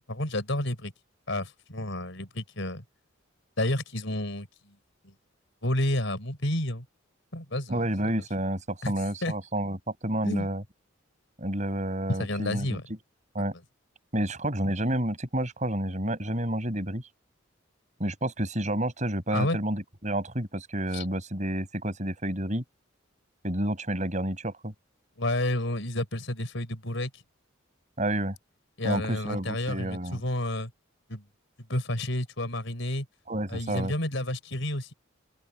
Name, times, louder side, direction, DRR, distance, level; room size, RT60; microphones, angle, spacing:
voice 1, 0.1-0.9 1.3-2.8 3.6-4.7 5.0-5.1 5.6-6.8 7.3-7.8 8.8-9.3 10.2-10.5 12.2-12.9 13.4-13.5 19.3-19.6 20.9-21.0 25.2-27.1 28.8-30.7 31.1-31.2 31.7-33.1 33.5-34.9, left 1 dB, 65° left, 4.8 m, -30 dB
voice 2, 7.7-10.6 11.4-12.8 13.3-13.5 14.1-17.0 18.0-22.6 23.4-24.7 28.0-28.4 28.8-30.2 33.3-33.9, right 1 dB, 35° right, 7.6 m, -30 dB
open air
head